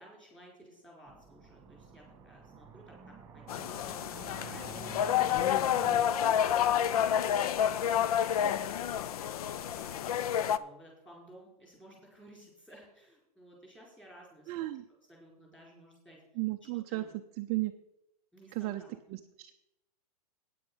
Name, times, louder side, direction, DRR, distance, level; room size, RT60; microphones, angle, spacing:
voice 1, 0.0-5.1 5.7-7.6 7.9-10.3 10.5-14.7 15.1-16.2 16.9-17.1 18.3-19.2, equal, 5° left, -2 dB, 4.3 m, -55 dB
sound 1, 1.1-6.0, right 7 dB, 15° right, 1.5 m, -49 dB
sound 2, 3.5-10.6, left 10 dB, 65° left, 0.6 m, -29 dB
voice 2, 14.5-14.8 16.4-17.0 17.4-17.7 18.5-18.8 19.1-19.5, right 19 dB, 30° right, 6 dB, 0.5 m, -34 dB
9.2 x 8.5 x 5.5 m, 0.87 s
hypercardioid pair, 140°, 20 cm